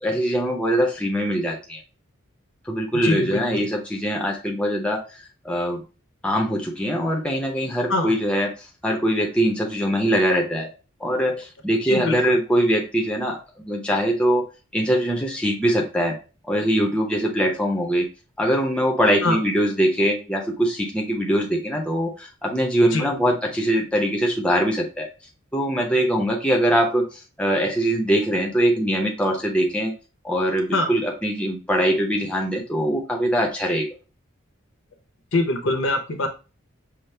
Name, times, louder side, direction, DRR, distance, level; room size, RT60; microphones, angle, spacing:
voice 1, 0.0-1.8 2.7-5.8 6.2-8.5 8.8-10.7 11.0-14.5 14.7-16.2 16.5-18.1 18.4-25.1 25.5-29.9 30.2-33.9, equal, 5° left, 0 dB, 0.6 m, -22 dB
voice 2, 2.9-3.7 7.9-8.1 11.3-11.4 11.9-12.4 19.2-19.4 22.9-23.1 30.7-30.9 35.3-36.3, left 2 dB, 65° left, 4 dB, 0.8 m, -23 dB
5.7 x 2.0 x 3.2 m, 0.33 s
head